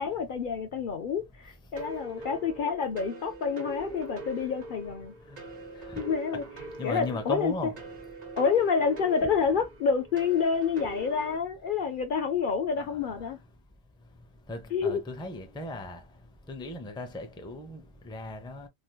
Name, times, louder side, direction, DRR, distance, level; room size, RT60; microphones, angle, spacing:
voice 1, 0.0-5.1 6.0-6.4 6.8-7.5 8.4-13.4 14.7-15.0, left 6 dB, 60° left, 0.6 m, -28 dB
sound 1, 1.8-11.4, right 2 dB, 45° right, 0.7 m, -43 dB
voice 2, 6.8-7.7 12.8-13.3 14.5-16.0 16.5-18.7, left 2 dB, 5° left, 0.4 m, -37 dB
3.3 x 2.8 x 2.2 m
omnidirectional pair, 1.1 m